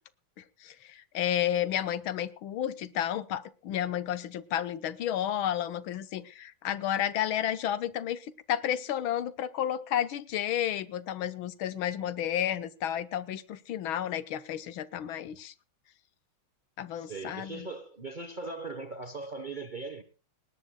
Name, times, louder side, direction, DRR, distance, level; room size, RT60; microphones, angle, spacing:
voice 1, 0.4-15.5 16.8-17.7, left 10 dB, 75° left, 1.7 m, -32 dB
voice 2, 17.0-20.0, right 3 dB, 35° right, 0.9 m, -39 dB
19.5 x 19.0 x 2.2 m
omnidirectional pair, 2.3 m